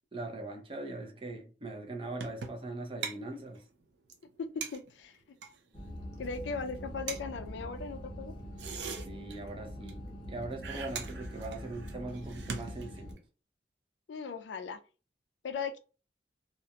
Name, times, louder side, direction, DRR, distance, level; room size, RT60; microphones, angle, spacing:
voice 1, 0.1-3.6 9.1-13.2, right 2 dB, 30° right, 0.5 m, -41 dB
sound 1, 2.2-2.7 3.0-3.2 3.5-3.6 3.8-3.9 4.1-4.2 4.6-5.6 6.1-6.4 6.7-6.8 7.1-7.2 8.4-9.6 9.9-10.3 10.6-13.2, right 6 dB, 80° right, 0.5 m, -41 dB
voice 2, 4.4-5.2 6.2-8.3 14.1-14.8 15.4-15.8, left 5 dB, 90° left, 0.4 m, -38 dB
sound 2, 5.7-13.1, equal, 25° left, 0.6 m, -44 dB
2.4 x 2.1 x 2.8 m
head